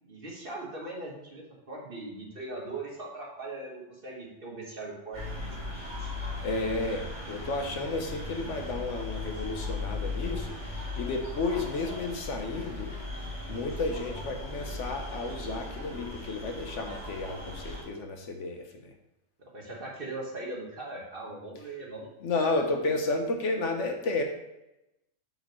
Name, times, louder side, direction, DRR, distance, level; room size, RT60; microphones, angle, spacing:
voice 1, 0.0-5.2 6.0-6.1 19.5-22.4, right 2 dB, 45° right, -2 dB, 1.5 m, -40 dB
sound 1, 5.1-17.8, left 2 dB, 35° left, 2.6 m, -38 dB
voice 2, 6.4-12.9 13.5-18.9 22.2-24.2, left 3 dB, 65° left, 4 dB, 1.1 m, -32 dB
7.1 x 6.1 x 3.1 m, 0.93 s
omnidirectional pair, 1.4 m